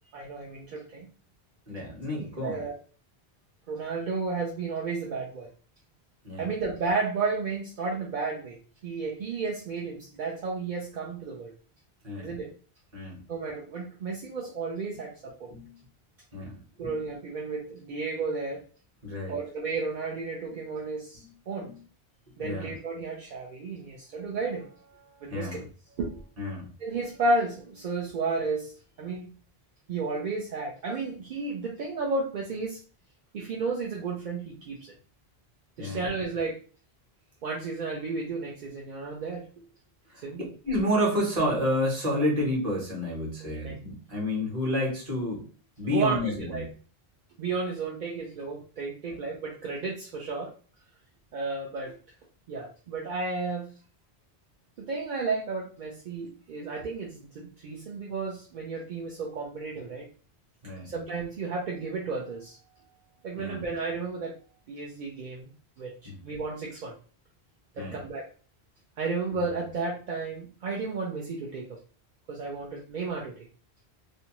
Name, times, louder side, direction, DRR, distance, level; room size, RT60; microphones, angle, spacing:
voice 1, 0.1-1.1 2.1-2.7 3.7-5.5 6.4-11.5 12.2-12.5 13.3-15.5 16.8-18.6 19.3-21.7 22.4-25.6 25.9-26.2 26.8-29.4 29.9-32.8 33.3-34.9 35.8-36.6 37.4-39.5 40.2-40.5 43.4-43.8 45.9-46.7 47.4-50.5 51.3-52.0 52.5-53.7 54.8-60.1 60.8-62.6 63.2-64.4 64.7-65.5 65.8-66.9 67.7-68.3 69.0-71.8 72.3-73.5, right 3 dB, 60° right, -2 dB, 0.6 m, -33 dB
voice 2, 1.7-2.6 6.2-6.5 12.0-12.3 12.9-13.2 15.5-15.7 16.3-16.9 19.0-19.3 21.6-21.7 22.4-22.7 25.3-25.6 26.4-26.7 35.8-36.0 40.1-40.2 40.6-45.5 45.8-46.6 60.6-60.9 63.4-63.6 66.0-66.2 67.8-68.0, left 1 dB, 40° right, -3 dB, 1.0 m, -30 dB
2.6 x 2.2 x 2.8 m, 0.39 s
omnidirectional pair, 1.1 m